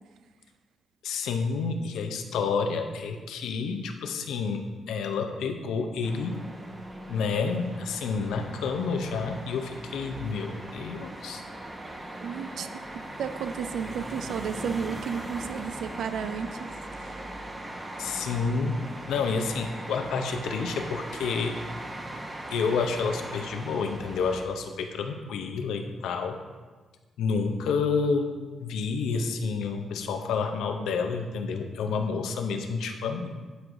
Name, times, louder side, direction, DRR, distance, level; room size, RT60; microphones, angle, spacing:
voice 1, 1.0-6.4 7.1-11.4 18.0-18.7 19.1-21.6 22.5-26.4 27.2-28.3 28.6-33.3, left 5 dB, 85° left, 5 dB, 0.6 m, -29 dB
sound 1, 6.0-24.4, right 1 dB, 25° right, 0.9 m, -39 dB
voice 2, 12.2-12.7 12.9-16.7 17.0-17.2, right 7 dB, 75° right, 10 dB, 0.4 m, -33 dB
11.0 x 4.7 x 2.6 m, 1.3 s
supercardioid pair, 60°, 0 cm